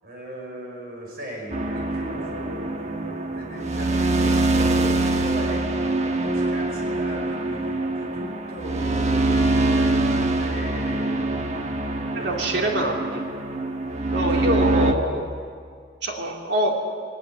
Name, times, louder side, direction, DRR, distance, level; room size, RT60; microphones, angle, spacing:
voice 1, 0.0-5.7 6.2-11.8 12.1-13.1 14.3-14.5, right 1 dB, 55° right, -1 dB, 5.9 m, -38 dB
sound 1, 1.5-14.9, right 2 dB, 40° right, 1.2 m, -24 dB
voice 2, 12.1-13.2 14.1-15.3 16.0-16.7, right 1 dB, 75° right, 1 dB, 2.9 m, -24 dB
20.0 x 19.5 x 8.0 m, 2.1 s
head